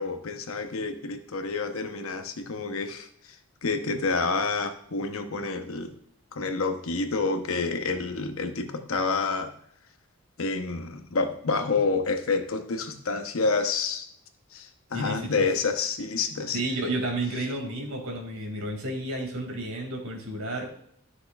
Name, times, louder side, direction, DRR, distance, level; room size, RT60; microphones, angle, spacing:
voice 1, 0.0-3.1 3.6-5.9 6.3-9.5 10.4-14.0 14.5-16.6, left 4 dB, 70° left, 7 dB, 0.8 m, -28 dB
voice 2, 14.9-15.5 16.5-20.7, right 2 dB, 75° right, 2 dB, 2.3 m, -31 dB
12.0 x 6.4 x 2.3 m, 0.69 s
head